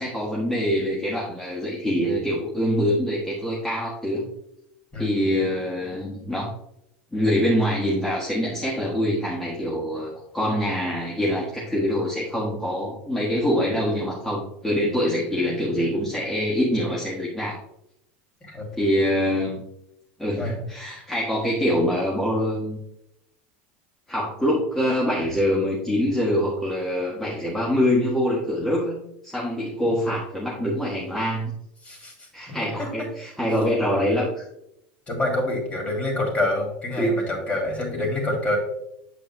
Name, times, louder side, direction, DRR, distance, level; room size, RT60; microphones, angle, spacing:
voice 1, 0.0-4.3 5.0-6.5 7.1-17.6 18.7-19.6 20.2-22.8 24.1-29.0 29.2-31.5 32.3-34.4 37.0-37.2, equal, 5° left, -6 dB, 1.4 m, -24 dB
voice 2, 4.9-5.3 18.4-18.6 20.4-20.6 31.8-32.9 35.1-38.6, left 1 dB, 20° left, 1 dB, 2.7 m, -27 dB
8.2 x 7.6 x 2.2 m, 0.81 s
supercardioid pair, 135°, 6 cm